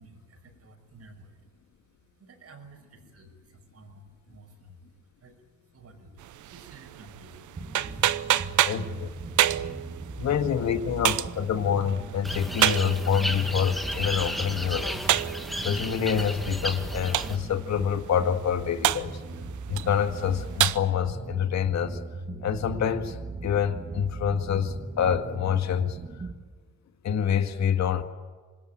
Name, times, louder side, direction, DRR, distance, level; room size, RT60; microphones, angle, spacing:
voice 1, 0.0-1.4 2.2-4.8 5.2-5.4 5.7-8.1, right 2 dB, 55° right, 6.0 m, -52 dB
sound 1, 6.2-20.8, right 13 dB, 75° right, 0.8 m, -30 dB
sound 2, 7.6-26.3, right 2 dB, 30° right, 2.5 m, -38 dB
voice 2, 8.6-9.1 10.2-15.0 15.6-19.2 19.7-22.0 22.4-26.0 27.0-28.0, left 8 dB, 65° left, 2.1 m, -27 dB
sound 3, 12.2-17.4, equal, ahead, 2.3 m, -34 dB
26.0 x 20.5 x 9.3 m
cardioid pair, 90°, 30 cm